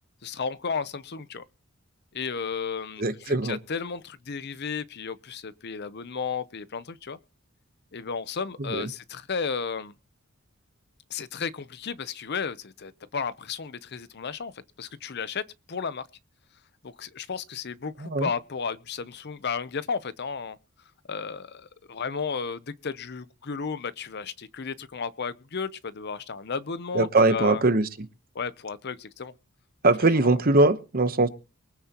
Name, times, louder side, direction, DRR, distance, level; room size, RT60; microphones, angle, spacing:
voice 1, 0.2-1.4 2.1-7.2 7.9-9.9 11.1-16.0 16.8-20.6 21.1-27.6 28.3-29.3 30.0-30.4, left 5 dB, 50° left, 0.7 m, -33 dB
voice 2, 3.0-3.6 8.6-8.9 18.0-18.3 26.9-27.9 29.8-31.3, right 2 dB, 45° right, 1.0 m, -21 dB
23.0 x 9.4 x 3.0 m
head